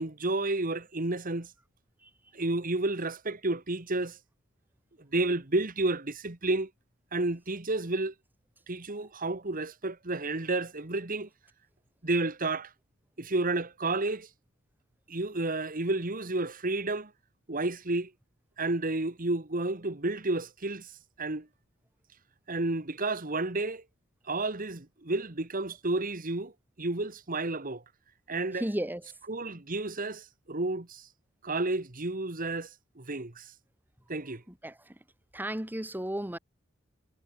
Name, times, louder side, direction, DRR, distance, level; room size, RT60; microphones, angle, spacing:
voice 1, 0.0-1.5 2.3-4.2 5.0-6.7 7.1-8.1 8.7-11.3 12.0-12.7 13.2-14.3 15.1-17.1 17.5-18.1 18.6-20.9 21.2-21.5 22.5-23.8 24.3-26.5 26.8-27.8 28.3-28.7 29.2-31.1 31.4-32.7 33.0-33.5 34.1-34.4, right 2 dB, 45° right, 1.9 m, -31 dB
voice 2, 28.5-29.0 34.5-35.0 35.3-36.4, right 1 dB, 10° right, 2.1 m, -34 dB
head